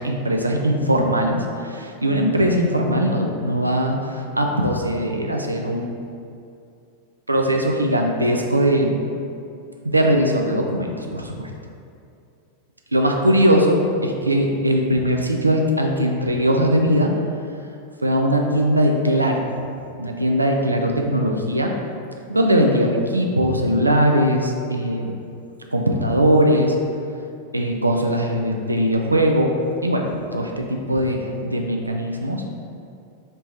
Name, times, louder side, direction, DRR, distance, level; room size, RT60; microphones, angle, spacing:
voice 1, 0.0-5.9 7.3-9.0 9.8-11.5 12.9-17.1 18.0-19.4 20.0-21.7 22.3-25.1 25.7-26.8 27.5-29.5 29.8-32.4, equal, 85° right, 2 dB, 0.3 m, -20 dB
3.2 x 2.8 x 3.2 m, 2.5 s
figure-of-eight pair, 90°, 0 cm